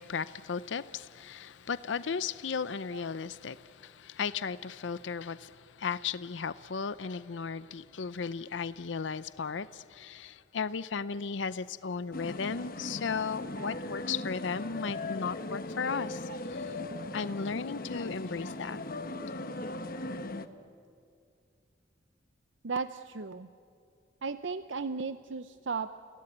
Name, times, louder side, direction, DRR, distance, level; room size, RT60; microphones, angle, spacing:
voice 1, 0.0-16.8 17.1-18.8, left 5 dB, 70° left, 0.6 m, -35 dB
sound 1, 12.1-20.5, left 2 dB, 50° left, 1.1 m, -38 dB
voice 2, 22.6-23.5 24.2-25.9, right 4 dB, 75° right, 0.6 m, -35 dB
29.5 x 17.5 x 10.0 m
head